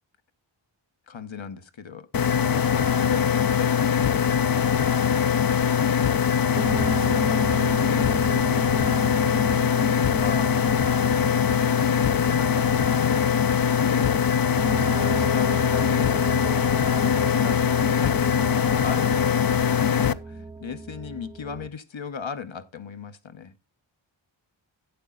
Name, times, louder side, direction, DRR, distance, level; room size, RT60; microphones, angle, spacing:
voice 1, 1.1-2.1 2.4-5.1 5.7-10.5 11.5-13.3 13.7-14.3 14.8-16.6 16.9-17.6 18.0-23.6, left 7 dB, 70° left, 1.1 m, -37 dB
sound 1, 2.1-20.1, left 8 dB, 45° left, 0.6 m, -22 dB
sound 2, 6.6-21.7, right 2 dB, 10° right, 0.5 m, -35 dB
11.5 x 8.4 x 3.8 m
wide cardioid pair, 55°, 48 cm